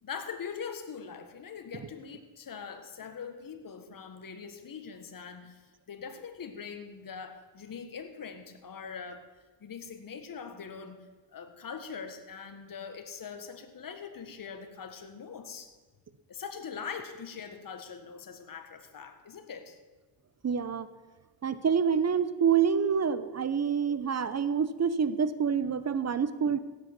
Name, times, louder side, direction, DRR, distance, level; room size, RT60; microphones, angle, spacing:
voice 1, 0.0-9.3 9.6-15.7 16.3-19.8, left 6 dB, 45° left, 7 dB, 1.7 m, -42 dB
voice 2, 20.4-20.9 21.4-26.6, right 7 dB, 35° right, 14 dB, 0.9 m, -27 dB
16.5 x 7.9 x 6.1 m, 1.2 s
cardioid pair, 75°, 45 cm